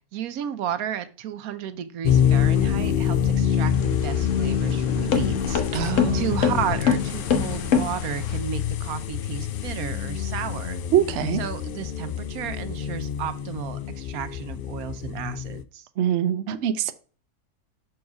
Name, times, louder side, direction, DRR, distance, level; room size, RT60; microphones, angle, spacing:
voice 1, 0.1-10.8 11.4-15.9, right 9 dB, 80° right, 1.1 m, -33 dB
sound 1, 2.0-15.6, left 9 dB, 85° left, 0.4 m, -26 dB
sound 2, 3.6-8.4, left 6 dB, 60° left, 1.3 m, -26 dB
voice 2, 5.7-6.2 10.9-11.4 16.0-16.9, right 10 dB, 60° right, 0.8 m, -23 dB
6.3 x 4.6 x 4.7 m
omnidirectional pair, 1.5 m